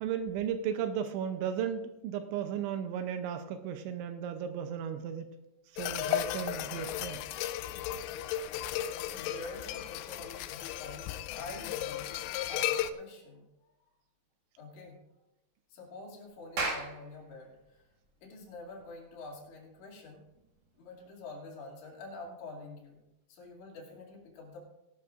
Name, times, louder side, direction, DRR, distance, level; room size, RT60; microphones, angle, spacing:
voice 1, 0.0-5.3 5.8-7.2, right 8 dB, 80° right, 8 dB, 2.7 m, -35 dB
sound 1, 5.8-12.9, left 12 dB, 85° left, 3.2 m, -35 dB
voice 2, 9.1-12.2 12.5-13.5 14.6-15.0 15.7-17.8 18.2-20.2 20.8-23.0 23.3-24.6, left 2 dB, 65° left, -1 dB, 4.6 m, -47 dB
Clapping, 16.3-21.2, right 2 dB, 55° right, 1.9 m, -40 dB
19.0 x 11.5 x 2.5 m, 0.92 s
omnidirectional pair, 5.9 m